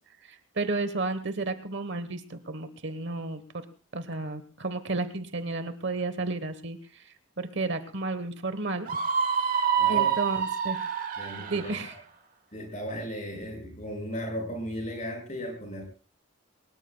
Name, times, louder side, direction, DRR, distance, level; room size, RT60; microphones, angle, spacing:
voice 1, 0.2-3.6 3.9-8.9 9.9-10.8 11.4-12.0, right 3 dB, 55° right, 11 dB, 1.2 m, -32 dB
Screaming, 8.9-11.8, right 7 dB, 40° right, 1.3 m, -27 dB
voice 2, 9.8-10.1 11.2-11.7 12.5-15.8, equal, 35° left, 2 dB, 6.6 m, -36 dB
23.0 x 20.0 x 2.3 m, 0.35 s
head